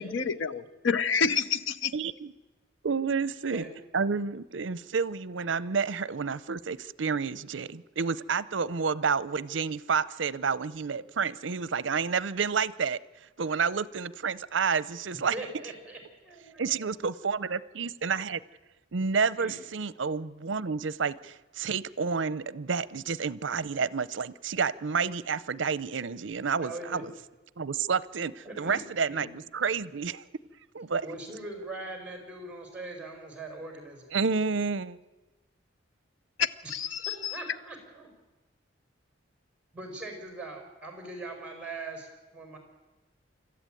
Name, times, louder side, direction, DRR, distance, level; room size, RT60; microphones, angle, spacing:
voice 1, 0.0-1.9 36.4-37.4, left 6 dB, 80° left, 0.8 m, -29 dB
voice 2, 1.9-2.3 2.8-3.6 3.9-13.0 13.4-15.3 16.6-18.4 18.9-27.1 27.6-30.2 30.7-31.1 34.1-35.0, right 5 dB, 70° right, 0.6 m, -30 dB
voice 3, 15.3-16.0 16.3-16.9 19.4-19.6 26.6-27.1 28.4-29.3 31.0-34.1 37.0-38.1 39.7-42.6, right 2 dB, 5° right, 5.3 m, -41 dB
26.0 x 14.0 x 9.1 m
head